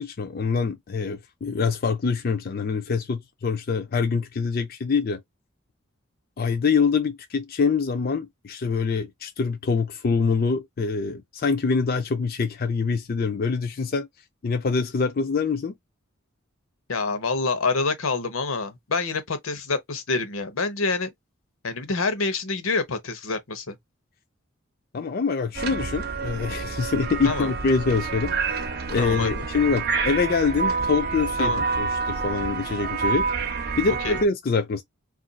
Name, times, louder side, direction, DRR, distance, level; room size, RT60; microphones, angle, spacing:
voice 1, 0.0-5.2 6.4-14.1 14.4-15.7 24.9-28.6 28.9-33.2 33.8-34.8, left 5 dB, 45° left, 0.4 m, -25 dB
voice 2, 16.9-21.1 21.6-23.8 27.2-27.5 29.0-29.5 31.4-31.6 33.9-34.2, left 3 dB, 85° left, 0.8 m, -27 dB
sound 1, 25.5-34.2, right 4 dB, 50° right, 0.7 m, -28 dB
2.5 x 2.3 x 3.8 m
head